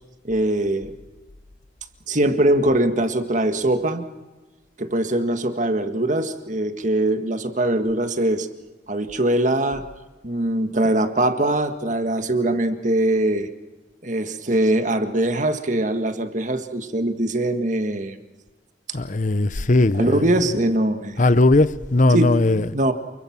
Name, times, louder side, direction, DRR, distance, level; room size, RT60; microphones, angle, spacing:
voice 1, 0.2-0.9 2.1-4.0 4.8-8.5 8.9-9.8 10.2-13.5 14.0-18.2 19.9-21.3 22.1-22.9, right 1 dB, 45° right, 1.8 m, -22 dB
voice 2, 18.9-20.2 21.2-22.6, left 2 dB, 45° left, 0.8 m, -18 dB
29.0 x 22.5 x 6.1 m
head